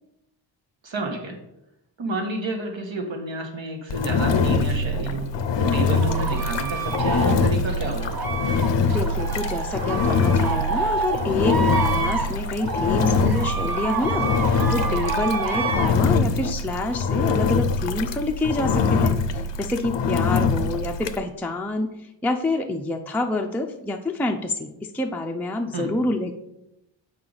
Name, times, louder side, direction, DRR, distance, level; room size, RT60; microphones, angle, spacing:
voice 1, 0.8-1.4 2.0-5.3 5.6-8.2 25.7-25.9, right 2 dB, 70° right, 2 dB, 1.4 m, -30 dB
Engine, 3.9-21.2, left 4 dB, 65° left, 0.5 m, -23 dB
sound 1, 5.6-15.9, right 4 dB, 50° right, 0.8 m, -29 dB
voice 2, 8.9-21.9 22.2-26.3, left 2 dB, 5° left, 2 dB, 0.4 m, -27 dB
7.5 x 4.8 x 3.9 m, 0.90 s
wide cardioid pair, 120°, 47 cm